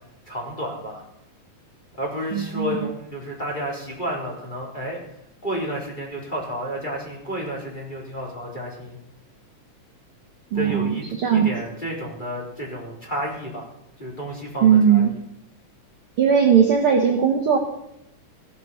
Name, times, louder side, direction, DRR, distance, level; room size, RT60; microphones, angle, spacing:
voice 1, 0.3-1.0 2.0-5.0 5.4-9.0 10.5-13.7 14.0-15.1, equal, 15° left, -2 dB, 4.2 m, -31 dB
voice 2, 2.3-2.9 10.5-11.5 14.6-15.1 16.2-17.6, right 7 dB, 50° right, 1 dB, 2.0 m, -18 dB
17.0 x 11.0 x 5.8 m, 0.81 s
omnidirectional pair, 3.6 m